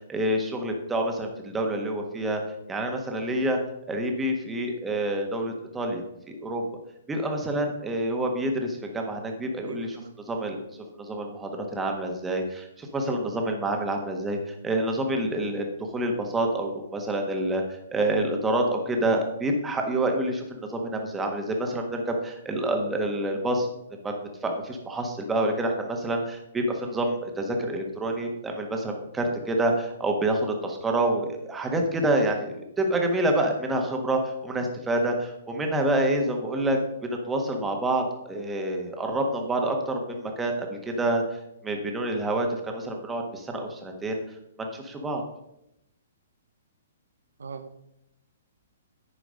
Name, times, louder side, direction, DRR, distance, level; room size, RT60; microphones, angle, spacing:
voice 1, 0.1-2.4 2.7-3.6 3.9-6.7 7.1-10.0 10.3-10.6 11.0-15.7 15.9-17.6 17.9-23.7 24.0-44.2 44.6-45.2, right 1 dB, 10° right, 2 dB, 1.5 m, -27 dB
voice 2, 9.6-10.2 47.4-47.8, right 5 dB, 75° right, 9 dB, 0.6 m, -40 dB
9.6 x 4.9 x 5.2 m, 0.84 s
figure-of-eight pair, 125°, 0 cm